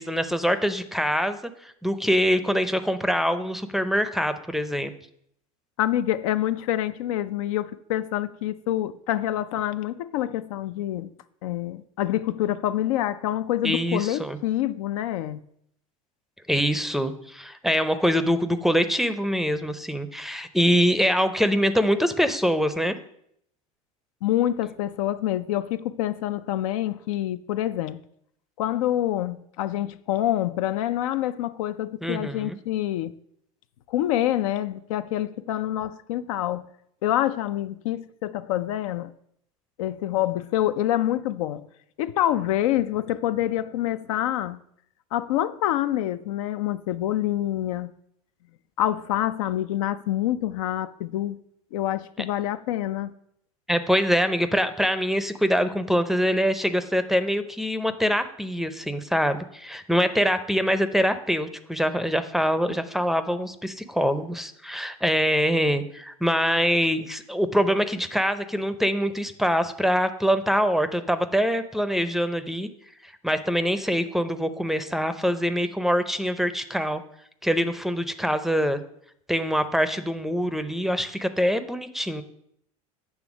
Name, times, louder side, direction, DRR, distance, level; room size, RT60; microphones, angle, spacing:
voice 1, 0.0-4.9 13.6-14.4 16.5-23.0 32.0-32.6 53.7-72.7 73.0-77.0 77.4-78.8 79.3-82.2, equal, ahead, 0.5 m, -24 dB
voice 2, 5.8-11.1 11.4-15.4 24.2-28.0 28.6-33.1 33.9-36.7 37.0-39.1 39.8-41.7 42.0-44.6 45.1-47.9 48.8-51.4 51.7-53.1, left 13 dB, 80° left, 0.4 m, -26 dB
8.0 x 3.4 x 6.0 m
supercardioid pair, 100°, 17 cm